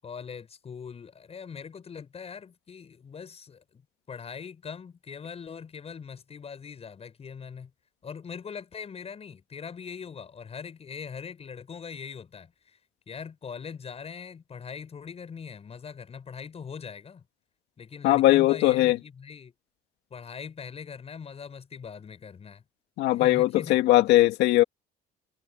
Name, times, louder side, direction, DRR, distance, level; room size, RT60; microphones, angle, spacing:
voice 1, 0.0-7.7 8.0-12.8 13.1-17.2 17.8-19.5 20.1-22.6 23.1-23.8, left 6 dB, 35° left, 6.8 m, -41 dB
voice 2, 18.0-19.0 23.0-24.6, left 15 dB, 85° left, 2.0 m, -20 dB
cardioid pair, 110°, 17 cm